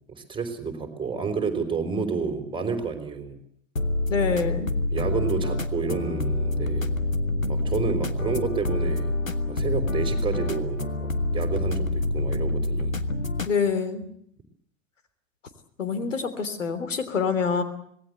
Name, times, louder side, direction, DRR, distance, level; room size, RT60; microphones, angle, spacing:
voice 1, 0.1-3.4 4.9-6.9 7.5-9.1 9.5-12.9, right 5 dB, 15° right, 6 dB, 4.5 m, -30 dB
sound 1, 3.8-13.5, left 2 dB, 90° left, 1.6 m, -27 dB
voice 2, 4.1-4.7 13.5-14.0 15.8-17.6, left 5 dB, 70° left, 9 dB, 3.5 m, -26 dB
26.0 x 19.0 x 8.0 m, 0.68 s
figure-of-eight pair, 90°, 39 cm